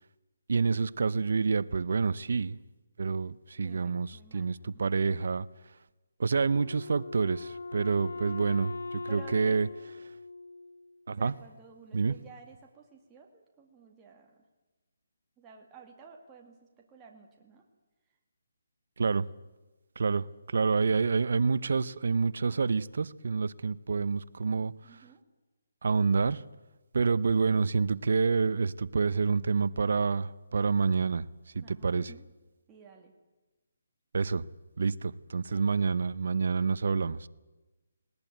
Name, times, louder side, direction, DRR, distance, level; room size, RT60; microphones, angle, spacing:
voice 1, 0.5-2.6 3.0-5.5 6.2-9.7 11.1-11.3 11.9-12.1 19.0-19.3 20.0-24.7 25.8-26.4 26.9-31.3 31.5-32.1 34.1-34.4 34.8-37.3, right 5 dB, 65° right, 17 dB, 0.8 m, -28 dB
voice 2, 3.6-4.9 9.1-9.6 11.1-14.4 15.4-17.6 24.8-25.2 31.6-32.3 32.7-33.1 35.5-35.7, right 5 dB, 15° right, 1 dB, 2.2 m, -54 dB
Wind instrument woodwind instrument, 6.5-11.0, left 3 dB, 85° left, 2.4 m, -41 dB
19.5 x 19.0 x 9.2 m, 1.1 s
hypercardioid pair, 165°, 0 cm